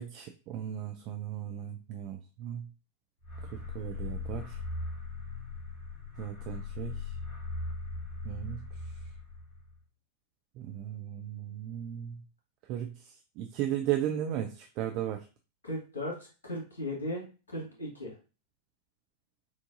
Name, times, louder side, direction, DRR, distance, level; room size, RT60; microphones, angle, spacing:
voice 1, 0.0-2.6 3.7-4.4 6.2-7.0 8.3-8.6 10.6-12.2 12.7-12.9 13.4-15.2, right 11 dB, 40° right, 5 dB, 0.4 m, -35 dB
sound 1, 3.2-9.8, left 3 dB, 55° left, 1.4 m, -39 dB
voice 2, 15.6-18.1, left 1 dB, 70° left, -1 dB, 1.8 m, -37 dB
5.9 x 2.6 x 2.5 m, 0.32 s
figure-of-eight pair, 90°, 0 cm